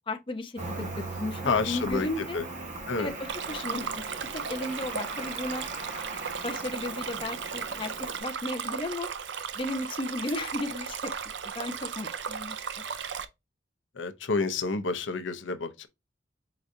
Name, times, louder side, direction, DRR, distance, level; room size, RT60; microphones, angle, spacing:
voice 1, 0.1-2.4 3.0-3.1 3.5-4.1 4.3-5.6 6.4-7.9 8.2-9.1 9.5-11.1 11.6-12.6, left 2 dB, 30° left, 0.6 m, -34 dB
Cricket, 0.6-8.2, right 2 dB, 40° right, 1.2 m, -39 dB
voice 2, 1.4-2.5 2.9-3.1 13.9-15.9, left 4 dB, 80° left, 0.7 m, -29 dB
Stream, 3.3-13.2, right 6 dB, 70° right, 0.6 m, -36 dB
4.6 x 3.9 x 2.6 m
head